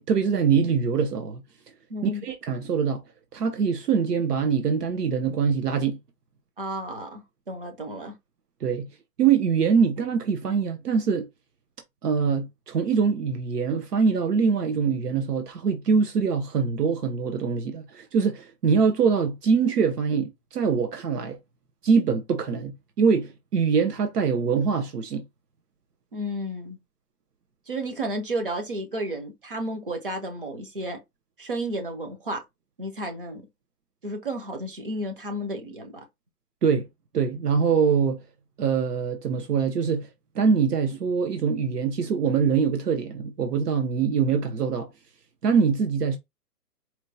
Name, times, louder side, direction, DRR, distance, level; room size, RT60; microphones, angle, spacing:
voice 1, 0.1-1.4 2.0-3.0 3.3-6.0 8.6-8.9 9.2-11.3 12.0-21.4 21.8-25.2 36.6-36.9 37.1-38.2 38.6-40.1 40.3-44.9 45.4-46.2, right 6 dB, 70° right, 0.8 m, -23 dB
voice 2, 1.9-2.2 6.6-8.1 26.1-26.8 27.7-31.0 31.4-32.4 32.8-33.4 34.0-36.0, right 1 dB, 35° right, 0.5 m, -32 dB
4.4 x 2.1 x 2.6 m
hypercardioid pair, 165°, 48 cm